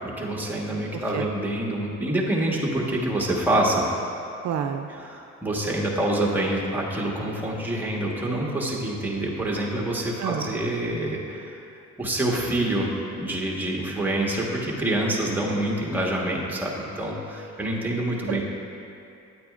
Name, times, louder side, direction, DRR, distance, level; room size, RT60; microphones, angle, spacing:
voice 1, 0.0-3.8 5.1-11.6 12.0-18.4, right 1 dB, 5° right, -3 dB, 1.3 m, -26 dB
voice 2, 0.9-1.3 4.4-4.9 10.2-10.5 18.3-18.4, right 8 dB, 65° right, 5 dB, 0.5 m, -29 dB
9.2 x 8.6 x 2.5 m, 2.6 s
cardioid pair, 90°, 30 cm